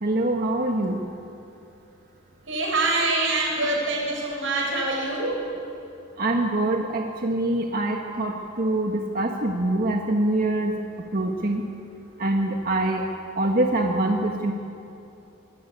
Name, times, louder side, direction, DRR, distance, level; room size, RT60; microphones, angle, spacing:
voice 1, 0.0-1.0 6.2-8.3 8.6-10.7 11.1-11.6 12.2-13.1 13.4-14.5, right 1 dB, 45° right, 1 dB, 1.7 m, -24 dB
voice 2, 2.5-5.4, right 2 dB, 75° right, -1 dB, 6.3 m, -25 dB
25.0 x 20.5 x 8.4 m, 2.7 s
head